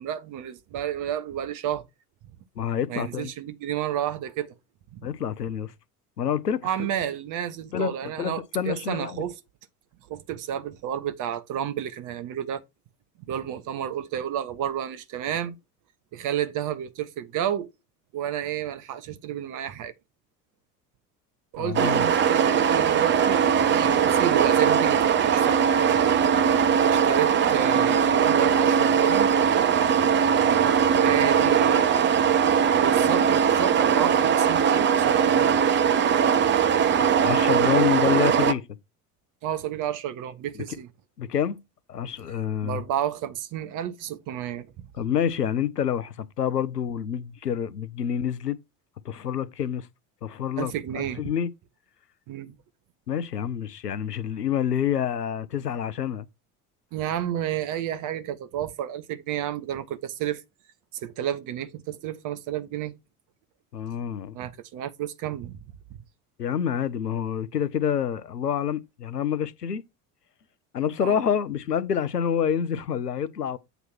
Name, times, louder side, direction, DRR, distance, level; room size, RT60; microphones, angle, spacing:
voice 1, 0.0-1.8 2.9-4.5 4.9-5.1 6.6-9.4 10.1-12.6 13.3-15.5 16.1-17.7 18.1-19.9 21.5-25.7 26.8-29.3 30.0-30.1 30.3-31.9 32.8-35.6 39.4-40.9 42.6-44.9 50.6-51.3 52.3-52.5 56.9-60.4 60.9-62.9 64.3-65.6 71.0-71.2, right 10 dB, 40° right, 0.9 m, -31 dB
voice 2, 2.6-3.3 5.0-5.7 6.2-6.7 7.7-9.3 21.6-22.0 37.0-38.6 40.5-40.6 41.2-41.6 41.9-42.8 45.0-48.6 49.0-49.9 50.2-51.5 53.1-56.3 63.7-64.4 66.4-69.8 70.7-73.6, left 8 dB, 85° left, 0.6 m, -27 dB
sound 1, 21.7-38.5, right 7 dB, 25° right, 0.6 m, -20 dB
7.9 x 2.9 x 6.0 m
figure-of-eight pair, 65°, 47 cm